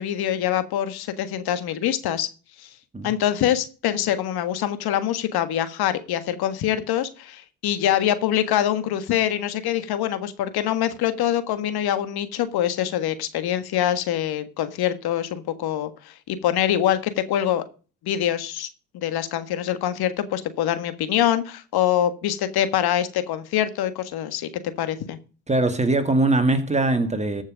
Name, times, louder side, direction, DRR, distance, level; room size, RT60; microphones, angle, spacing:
voice 1, 0.0-2.3 2.6-2.7 3.0-17.6 18.0-18.7 18.9-25.2, left 11 dB, 65° left, 1.6 m, -24 dB
voice 2, 25.5-27.4, right 2 dB, 15° right, 2.2 m, -21 dB
14.5 x 6.4 x 5.1 m
supercardioid pair, 85°, 40 cm